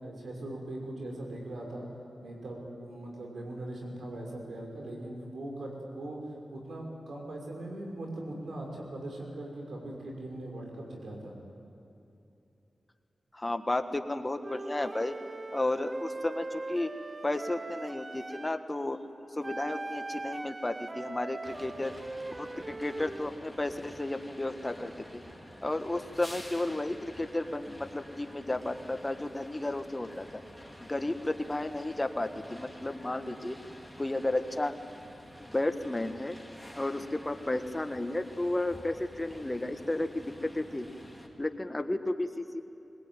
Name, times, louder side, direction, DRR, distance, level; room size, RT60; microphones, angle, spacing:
voice 1, 0.0-1.9 2.2-6.2 6.5-11.4, right 1 dB, 80° right, 0 dB, 5.9 m, -40 dB
voice 2, 13.3-15.1 15.5-16.9 17.2-19.0 19.3-21.9 22.4-25.2 25.6-30.4 30.9-33.6 34.0-34.7 35.4-36.4 36.7-40.9 41.4-42.6, left 2 dB, 25° left, 8 dB, 1.5 m, -33 dB
Wind instrument woodwind instrument, 14.4-18.6 19.4-23.3, right 2 dB, 40° right, 0.9 m, -41 dB
sound 1, 21.4-41.3, equal, 5° right, 4.2 m, -49 dB
21.5 x 21.0 x 9.1 m, 2.9 s
cardioid pair, 45°, 0 cm